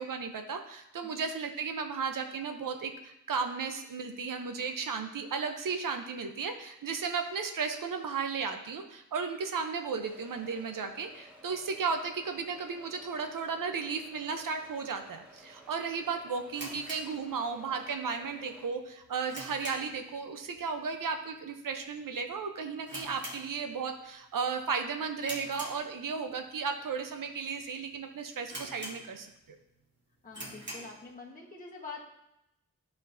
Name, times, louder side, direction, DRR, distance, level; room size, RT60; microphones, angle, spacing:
voice 1, 0.0-29.3, right 5 dB, 90° right, 6 dB, 0.7 m, -35 dB
sound 1, 10.0-18.6, equal, 5° right, 1.9 m, -55 dB
sound 2, 16.5-17.9 18.1-18.2 18.8-20.1 20.4-20.7 21.0-21.1 21.8-22.0 22.3-22.4 22.8-24.0 24.3-24.6 25.2-26.3 26.9-27.0 27.6-27.7 27.9-28.0 28.5-29.4 29.8-29.9 30.3-31.0, right 1 dB, 35° right, 1.7 m, -43 dB
voice 2, 30.2-32.0, left 4 dB, 25° left, -3 dB, 1.2 m, -45 dB
10.5 x 4.5 x 2.7 m, 0.84 s
wide cardioid pair, 80°, 32 cm